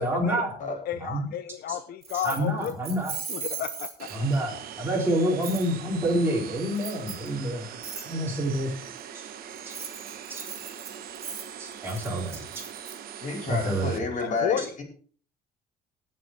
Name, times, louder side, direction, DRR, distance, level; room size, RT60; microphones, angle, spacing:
voice 1, 0.0-0.6 1.0-1.3 1.7-1.8 2.1-3.1 4.1-7.7 8.0-8.7 9.7-9.8 10.3-10.4 11.6-12.6 13.5-13.9 14.6-14.7, right 1 dB, 15° right, -3 dB, 3.5 m, -28 dB
voice 2, 0.9-2.7 3.3-4.1 14.2-14.6, left 10 dB, 65° left, 11 dB, 0.8 m, -31 dB
Keys jangling, 2.0-4.4 5.4-5.7 6.7-7.3 7.8-8.1 9.6-12.9, right 6 dB, 35° right, 3.4 m, -38 dB
sound 1, 4.0-14.0, right 9 dB, 60° right, 1.6 m, -41 dB
voice 3, 13.2-14.8, left 3 dB, 45° left, 3 dB, 4.9 m, -30 dB
19.0 x 6.6 x 4.4 m, 0.43 s
cardioid pair, 110°, 17 cm